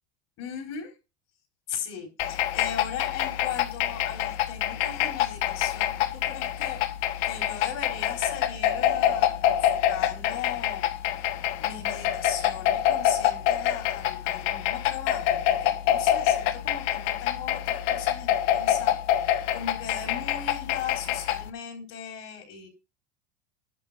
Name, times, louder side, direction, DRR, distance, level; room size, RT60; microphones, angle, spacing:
voice 1, 0.4-0.9 1.7-6.8 7.2-10.8 11.6-22.7, left 8 dB, 50° left, 3 dB, 4.0 m, -38 dB
sound 1, 2.2-21.5, left 11 dB, 70° left, 1.2 m, -26 dB
11.5 x 4.0 x 6.8 m, 0.28 s
supercardioid pair, 115°, 33 cm